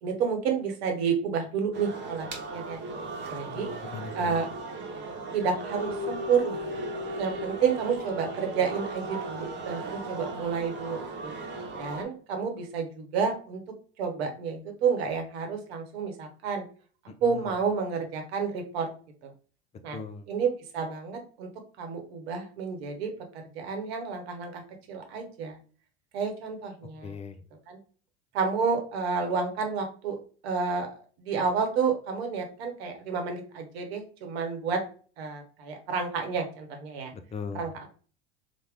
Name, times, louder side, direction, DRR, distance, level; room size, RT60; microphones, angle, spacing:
voice 1, 0.0-2.3 2.5-2.8 3.3-3.7 4.1-4.5 5.3-6.6 7.2-11.3 11.7-13.6 14.0-16.6 17.2-18.9 19.8-20.0 20.3-21.5 21.8-23.1 23.5-24.6 24.9-25.6 26.1-27.1 27.7-27.8 28.3-30.2 30.4-30.9 31.2-34.8 35.2-37.1 37.5-37.9, right 6 dB, 70° right, 4 dB, 1.0 m, -30 dB
sound 1, 1.7-12.0, right 2 dB, 35° right, 1.0 m, -36 dB
voice 2, 3.5-4.4 17.1-17.5 19.9-20.3 27.0-27.4 37.1-37.9, left 5 dB, 20° left, 8 dB, 0.4 m, -40 dB
3.4 x 2.1 x 3.4 m, 0.40 s
hypercardioid pair, 75°, 33 cm